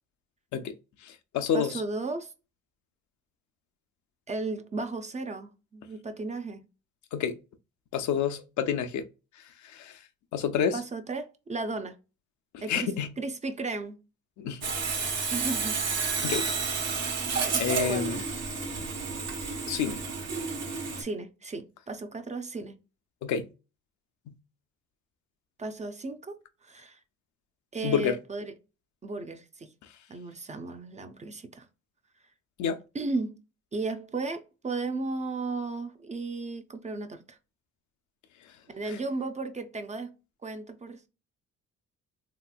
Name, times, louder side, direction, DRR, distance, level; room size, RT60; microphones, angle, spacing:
voice 1, 1.0-1.8 7.1-7.4 7.9-9.0 9.6-10.0 10.3-10.8 12.5-13.1 14.4-14.7 16.2-16.5 17.6-18.2 19.7-20.0 23.2-23.5 24.3-24.4 27.8-28.2 32.6-32.8 38.9-39.0, left 7 dB, 70° left, 0.6 m, -29 dB
voice 2, 1.5-2.3 4.3-6.6 10.7-12.0 12.6-14.0 15.3-15.8 17.5-18.2 21.0-22.8 25.6-27.0 27.7-28.5 29.0-29.7 30.1-31.7 32.9-33.4 33.7-37.4 38.7-40.1 40.4-41.0, right 3 dB, 25° right, 0.4 m, -35 dB
Sawing, 14.6-21.0, right 4 dB, 60° right, 1.0 m, -30 dB
3.1 x 2.8 x 2.2 m
cardioid pair, 90°, 30 cm